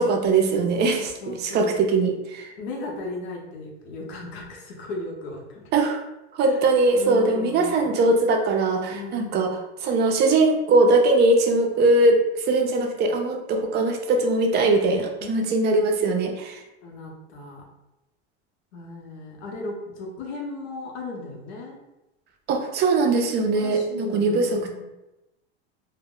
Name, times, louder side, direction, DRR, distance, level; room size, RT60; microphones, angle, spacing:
voice 1, 0.0-2.5 5.7-6.0 6.3-16.6 22.5-24.6, right 2 dB, 30° right, 3 dB, 0.4 m, -21 dB
voice 2, 1.0-1.8 2.6-5.7 6.4-6.6 6.9-7.9 8.9-9.5 15.2-15.6 16.8-17.6 18.7-21.8 23.5-24.8, left 2 dB, 75° left, 0 dB, 0.8 m, -36 dB
2.1 x 2.0 x 3.6 m, 0.96 s
supercardioid pair, 120°, 33 cm